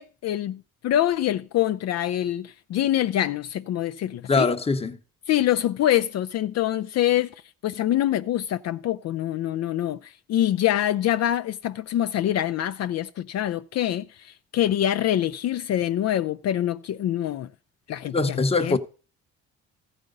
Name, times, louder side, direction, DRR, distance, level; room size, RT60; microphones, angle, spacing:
voice 1, 0.0-4.5 5.3-7.3 7.6-17.5 17.9-18.8, left 12 dB, 60° left, 0.4 m, -25 dB
voice 2, 4.3-5.0 18.1-18.8, left 3 dB, 20° left, 0.8 m, -22 dB
14.0 x 5.0 x 5.2 m
cardioid pair, 90°, 30 cm